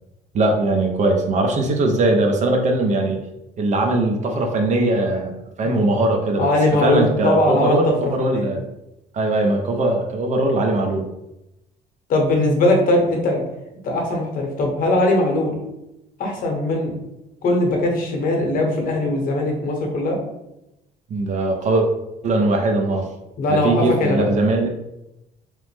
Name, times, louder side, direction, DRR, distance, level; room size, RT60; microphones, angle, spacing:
voice 1, 0.3-3.2 3.6-6.5 6.8-8.7 9.1-11.1 21.1-21.9 22.2-23.1 23.5-24.7, right 2 dB, 45° right, 3 dB, 0.5 m, -20 dB
voice 2, 6.4-8.5 12.1-13.4 13.8-15.6 16.2-17.0 17.4-20.2 23.4-24.2, left 2 dB, 55° left, 1 dB, 0.8 m, -20 dB
3.0 x 2.0 x 3.2 m, 0.91 s
cardioid pair, 110°, 17 cm